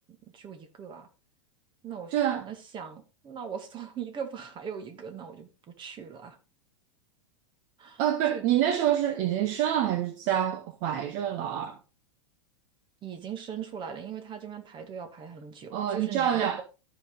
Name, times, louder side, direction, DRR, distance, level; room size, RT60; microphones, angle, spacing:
voice 1, 0.1-1.1 1.8-5.5 5.8-6.4 7.8-8.0 8.3-8.4 13.0-16.6, right 7 dB, 30° right, 2.1 m, -40 dB
voice 2, 2.1-2.4 8.0-11.8 15.7-16.6, right 10 dB, 50° right, 1.1 m, -27 dB
13.5 x 5.8 x 3.9 m
hypercardioid pair, 105°, 16 cm